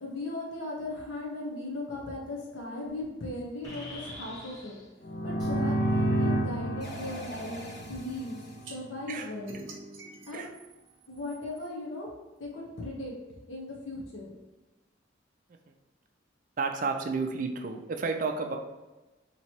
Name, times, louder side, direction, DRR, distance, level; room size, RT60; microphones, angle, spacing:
voice 1, 0.0-4.8 5.2-8.4 8.7-9.6 10.3-10.5 11.1-12.1 12.4-13.1 13.5-14.3, left 2 dB, 85° left, -3 dB, 0.8 m, -37 dB
sound 1, 3.0-3.1 3.6-4.9 5.4-5.5 6.8-8.6, equal, 20° left, 1.3 m, -44 dB
sound 2, 5.0-8.8, right 1 dB, 55° left, 0.5 m, -30 dB
sound 3, 8.6-8.8 9.5-11.7, right 3 dB, 85° right, 0.7 m, -47 dB
voice 2, 16.6-18.6, right 4 dB, 45° right, 4 dB, 0.4 m, -31 dB
3.0 x 2.9 x 4.4 m, 1.1 s
head